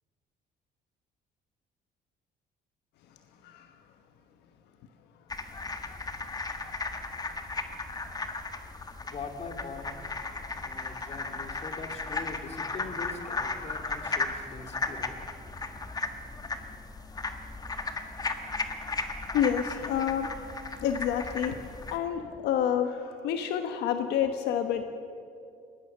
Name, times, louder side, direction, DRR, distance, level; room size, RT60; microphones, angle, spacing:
sound 1, 5.3-22.0, left 3 dB, 20° left, 1.5 m, -36 dB
voice 1, 9.0-9.9 10.4-15.1, left 4 dB, 40° left, 5 dB, 2.5 m, -42 dB
voice 2, 19.3-20.3 20.8-21.6 21.9-24.8, left 9 dB, 80° left, 7 dB, 1.2 m, -28 dB
21.5 x 18.0 x 6.7 m, 2.5 s
cardioid pair, 110°, 17 cm